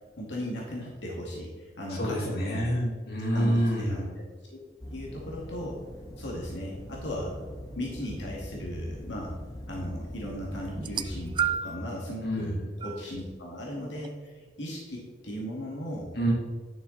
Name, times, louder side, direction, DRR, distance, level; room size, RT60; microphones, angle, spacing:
voice 1, 0.2-2.7 3.3-4.0 4.5-4.6 4.9-5.8 6.2-7.3 7.8-9.3 9.7-16.1, equal, 80° left, -2 dB, 2.1 m, -36 dB
voice 2, 2.0-4.1 12.2-12.7 16.2-16.3, equal, 60° left, -3 dB, 2.5 m, -27 dB
sound 1, 4.8-11.4, equal, 20° left, 1.3 m, -42 dB
sound 2, 10.8-11.9 12.8-13.0 14.0-14.1, right 8 dB, 25° right, 0.3 m, -30 dB
10.5 x 6.7 x 4.0 m, 1.4 s
head